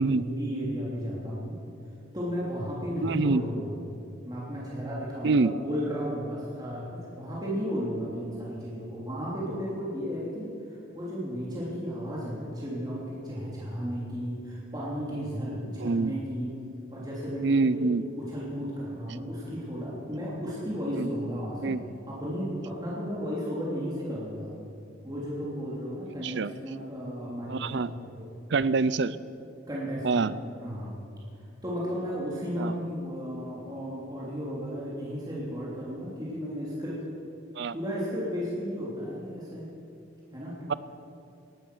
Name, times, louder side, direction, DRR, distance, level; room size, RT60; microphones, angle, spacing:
voice 1, 0.0-1.5 2.1-3.7 4.2-16.5 16.9-17.8 18.2-21.7 22.1-24.5 25.0-28.3 29.7-30.3 30.6-30.9 31.6-37.0 37.7-39.7 40.3-40.5, equal, 20° right, -6 dB, 3.1 m, -34 dB
voice 2, 3.0-3.4 5.2-5.5 15.8-16.1 17.4-18.0 20.9-21.1 21.6-21.8 26.2-26.5 27.5-27.9 28.5-29.2 30.0-30.3 32.6-32.7 37.6-37.8 40.7-40.8, right 3 dB, 60° right, 16 dB, 0.5 m, -25 dB
19.5 x 12.0 x 6.2 m, 2.6 s
head